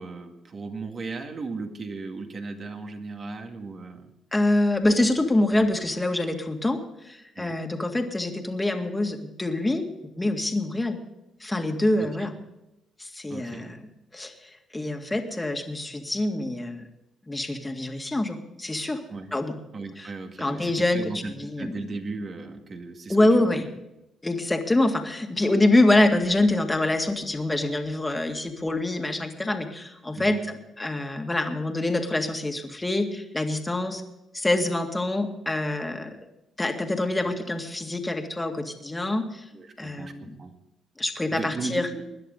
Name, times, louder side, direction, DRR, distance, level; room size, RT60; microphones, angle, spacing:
voice 1, 0.0-4.1 7.4-7.6 12.0-12.3 13.3-13.7 19.1-19.3 19.7-23.6 30.1-30.5 37.2-37.3 39.5-40.6 41.3-42.1, right 3 dB, 45° right, 4 dB, 2.1 m, -37 dB
voice 2, 4.3-9.9 10.2-11.0 11.4-12.3 13.0-13.8 14.1-14.3 14.7-16.8 17.3-19.0 19.3-19.6 20.0-20.1 20.4-21.0 21.3-21.7 23.1-23.7 24.2-30.4 30.8-34.0 34.3-36.2 36.6-39.5 39.8-40.3 41.0-41.9, left 2 dB, 15° left, 4 dB, 2.0 m, -25 dB
20.5 x 11.0 x 3.9 m, 0.91 s
cardioid pair, 90°, 0 cm